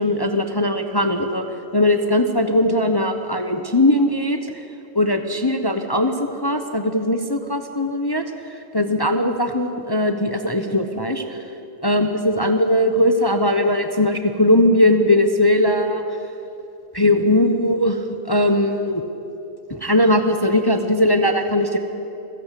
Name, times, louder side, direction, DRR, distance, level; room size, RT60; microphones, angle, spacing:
voice 1, 0.0-1.5 1.7-4.6 4.9-8.2 8.7-11.4 11.8-16.0 16.9-18.0 18.3-19.0 19.7-21.8, left 1 dB, 20° left, 6 dB, 1.0 m, -19 dB
27.5 x 16.5 x 8.4 m, 3.0 s
omnidirectional pair, 1.5 m